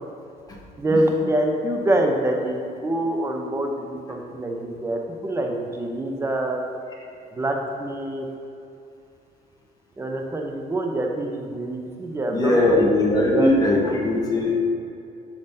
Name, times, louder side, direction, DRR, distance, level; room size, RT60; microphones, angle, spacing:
voice 1, 0.8-6.6 7.3-8.3 10.0-12.8 13.3-13.5 13.8-14.2, right 1 dB, 15° right, 2 dB, 0.7 m, -25 dB
voice 2, 12.3-14.5, left 1 dB, 20° left, -3 dB, 1.2 m, -19 dB
6.6 x 5.5 x 2.7 m, 2.7 s
cardioid pair, 110°, 17 cm